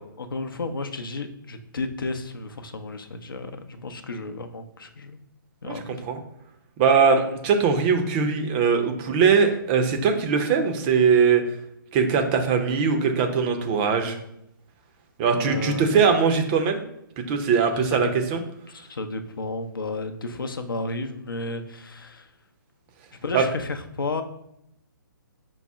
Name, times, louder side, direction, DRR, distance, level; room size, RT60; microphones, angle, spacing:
voice 1, 0.2-5.2 5.6-5.9 15.3-16.0 17.9-18.1 18.7-22.3 23.2-24.2, left 3 dB, 75° left, 7 dB, 0.6 m, -32 dB
voice 2, 6.8-11.4 11.9-14.2 15.2-16.8 17.2-18.4 23.3-23.4, right 6 dB, 25° right, 5 dB, 0.5 m, -21 dB
5.5 x 2.0 x 3.5 m, 0.79 s
figure-of-eight pair, 135°, 12 cm